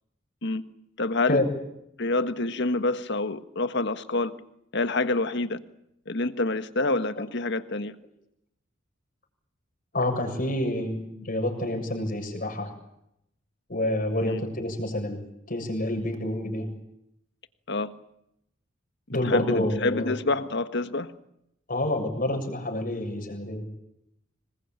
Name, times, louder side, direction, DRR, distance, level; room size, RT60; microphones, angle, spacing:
voice 1, 1.0-1.4 2.0-4.3 4.7-5.6 6.1-7.9 14.2-14.4 17.7-17.9 19.3-21.1, left 2 dB, 60° left, 11 dB, 1.5 m, -27 dB
voice 2, 9.9-12.7 13.7-16.7 19.1-20.1 21.7-23.6, left 1 dB, 45° left, 2 dB, 7.2 m, -28 dB
26.0 x 21.5 x 9.0 m, 0.80 s
head